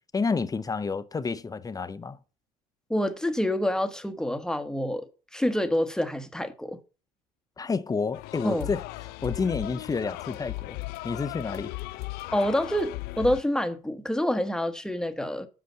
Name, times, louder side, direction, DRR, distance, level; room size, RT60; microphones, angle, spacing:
voice 1, 0.1-2.2 7.6-10.8 11.0-11.7, left 4 dB, 20° left, 0.8 m, -30 dB
voice 2, 2.9-5.0 5.3-6.8 8.4-8.7 12.3-15.5, left 1 dB, 5° left, 1.1 m, -27 dB
sound 1, 8.1-13.4, left 20 dB, 65° left, 0.4 m, -37 dB
7.8 x 5.1 x 6.8 m
supercardioid pair, 90°, 17 cm